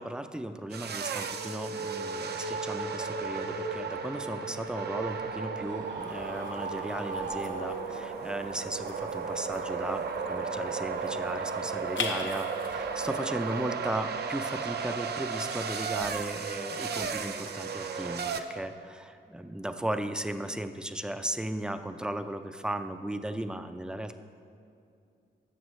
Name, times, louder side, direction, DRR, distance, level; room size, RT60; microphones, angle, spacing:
voice 1, 0.0-24.1, right 1 dB, 5° right, 8 dB, 0.4 m, -36 dB
sound 1, 0.7-18.4, right 5 dB, 60° right, 0.6 m, -34 dB
Screaming, 5.5-8.2, right 4 dB, 80° right, 1.3 m, -40 dB
sound 2, 6.0-13.7, left 5 dB, 80° left, 0.8 m, -43 dB
17.0 x 7.2 x 3.1 m, 2.4 s
wide cardioid pair, 125°, 19 cm